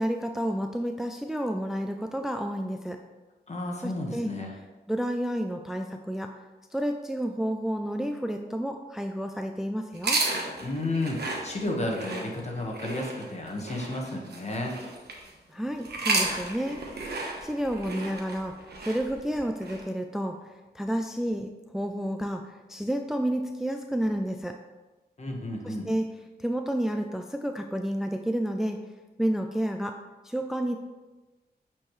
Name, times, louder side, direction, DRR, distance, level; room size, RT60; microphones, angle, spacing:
voice 1, 0.0-3.0 3.8-4.3 4.9-6.3 6.7-10.2 15.5-16.8 17.4-24.6 25.6-26.1 26.4-28.8 29.2-30.8, equal, ahead, 5 dB, 0.4 m, -30 dB
voice 2, 3.5-4.5 10.6-14.8 25.2-25.9, left 2 dB, 40° left, 0 dB, 1.4 m, -32 dB
sound 1, 9.9-15.3 15.8-19.8, right 3 dB, 75° right, 1.1 m, -33 dB
8.5 x 4.5 x 3.2 m, 1.2 s
wide cardioid pair, 75°, 17 cm